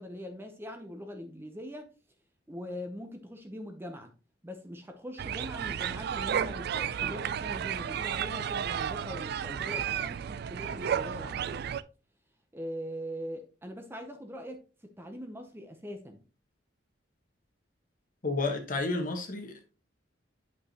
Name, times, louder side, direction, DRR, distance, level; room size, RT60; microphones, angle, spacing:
voice 1, 0.0-1.9 2.5-4.1 4.4-11.6 12.5-16.2, equal, 10° right, 0.7 m, -42 dB
sound 1, 5.2-11.8, right 8 dB, 55° right, 0.3 m, -33 dB
voice 2, 18.2-19.7, left 3 dB, 45° left, 1.3 m, -31 dB
8.3 x 5.3 x 2.9 m
head